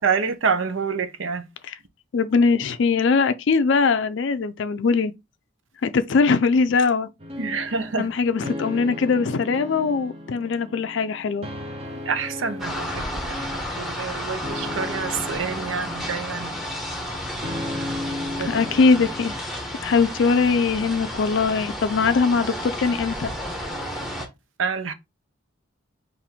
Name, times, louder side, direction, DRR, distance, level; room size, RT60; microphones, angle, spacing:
voice 1, 0.0-1.4 7.4-8.1 11.9-16.5 18.4-18.5 24.6-24.9, right 5 dB, 70° right, 0.7 m, -27 dB
voice 2, 2.1-5.1 5.8-7.1 8.0-11.5 18.4-19.3 19.8-23.3, left 4 dB, 60° left, 0.4 m, -21 dB
sound 1, 7.2-19.4, left 1 dB, 30° right, 0.7 m, -36 dB
sound 2, 12.6-24.3, equal, ahead, 0.9 m, -32 dB
4.1 x 2.6 x 4.2 m
head